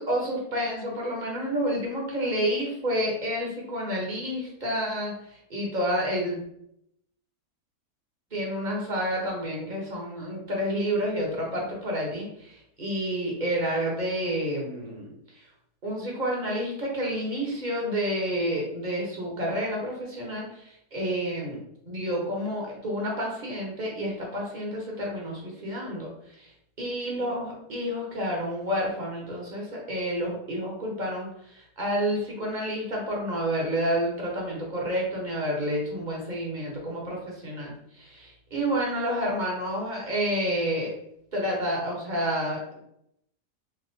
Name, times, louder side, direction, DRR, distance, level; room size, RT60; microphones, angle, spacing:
voice 1, 0.1-5.2 5.5-6.4 8.3-15.1 15.8-21.6 21.9-26.1 26.4-26.5 26.8-37.7 38.0-40.9 41.3-42.8, equal, 35° right, -3 dB, 1.0 m, -29 dB
3.4 x 2.9 x 3.9 m, 0.76 s
omnidirectional pair, 1.8 m